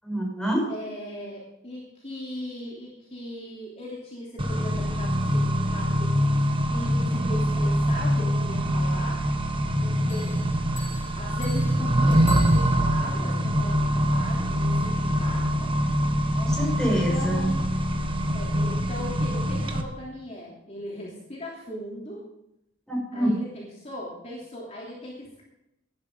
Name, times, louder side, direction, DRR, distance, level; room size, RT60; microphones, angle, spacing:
voice 1, 0.0-0.7 16.4-17.5 22.9-23.4, equal, 5° left, -2 dB, 6.3 m, -26 dB
voice 2, 0.7-6.1 6.7-9.2 9.8-15.4 16.8-17.6 18.3-22.2 23.1-25.4, left 1 dB, 35° left, -5 dB, 3.2 m, -38 dB
Accelerating revving vroom, 4.4-19.8, equal, 25° right, 1.3 m, -24 dB
Bell, 10.1-13.2, left 2 dB, 65° left, 3.9 m, -44 dB
17.5 x 11.5 x 3.8 m, 0.86 s
head